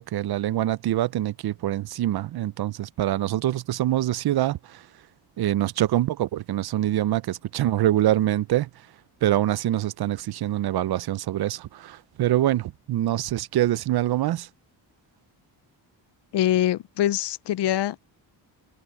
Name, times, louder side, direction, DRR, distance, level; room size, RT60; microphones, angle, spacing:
voice 1, 0.0-4.9 5.4-8.7 9.2-14.5, right 13 dB, 60° right, 0.6 m, -25 dB
voice 2, 16.3-18.0, left 12 dB, 70° left, 0.6 m, -24 dB
cardioid pair, 125°, 43 cm